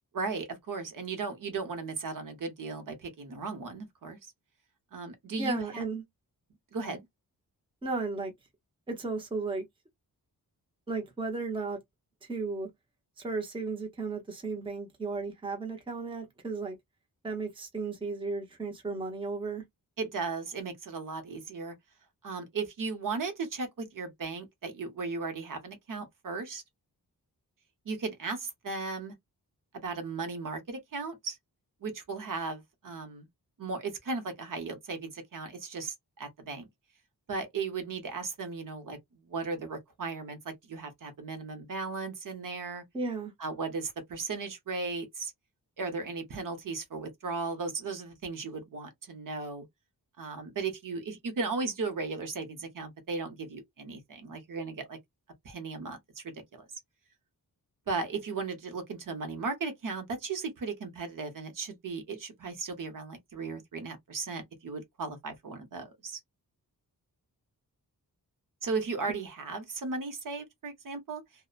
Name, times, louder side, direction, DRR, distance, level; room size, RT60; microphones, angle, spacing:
voice 1, 0.1-4.3 4.9-5.8 6.7-7.0 20.0-21.7 22.2-26.6 27.9-29.1 29.8-31.4 31.8-33.3 33.6-36.7 37.3-39.0 39.2-42.8 43.4-45.3 45.8-49.6 50.2-55.0 55.4-56.7 57.9-66.2 68.6-71.2, right 4 dB, 60° right, 0.8 m, -36 dB
voice 2, 5.4-6.0 7.8-8.3 8.9-9.6 10.9-11.8 12.3-12.7 13.2-16.8 17.2-19.6 42.9-43.3, right 3 dB, 15° right, 0.6 m, -34 dB
2.7 x 2.1 x 2.4 m
wide cardioid pair, 175°, 37 cm